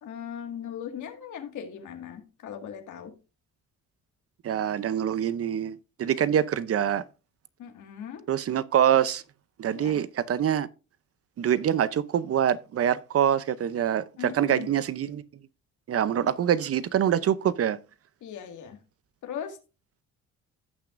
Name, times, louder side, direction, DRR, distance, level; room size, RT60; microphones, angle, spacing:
voice 1, 0.0-3.1 7.6-8.3 9.7-10.0 14.2-14.7 18.2-18.8 19.2-19.6, left 8 dB, 75° left, 2.0 m, -39 dB
voice 2, 4.4-7.0 8.3-9.2 9.6-10.7 11.4-15.2 15.9-17.8, right 9 dB, 50° right, 0.7 m, -25 dB
16.5 x 6.0 x 2.5 m
cardioid pair, 90°, 30 cm